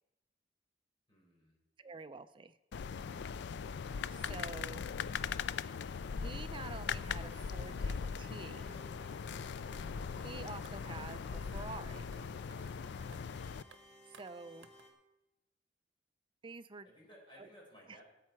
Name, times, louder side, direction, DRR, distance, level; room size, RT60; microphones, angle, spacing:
voice 1, 1.1-1.6 16.8-18.0, equal, 30° left, -3 dB, 4.9 m, -60 dB
voice 2, 1.8-2.6 4.1-4.9 6.2-8.8 10.2-12.1 14.1-14.7 16.4-16.9 17.4-17.5, right 4 dB, 30° right, 11 dB, 0.5 m, -48 dB
sound 1, 2.7-13.6, left 6 dB, 65° left, 0.4 m, -40 dB
sound 2, 7.3-14.9, equal, 5° left, 2.7 m, -59 dB
sound 3, 10.2-10.3 10.6-10.7 11.0-11.2 11.5-11.7 12.0-12.2 12.5-12.8 13.0-13.2 13.6-13.8 14.1-14.3 14.6-14.9, right 5 dB, 75° right, 0.9 m, -59 dB
17.5 x 8.6 x 4.7 m, 0.96 s
head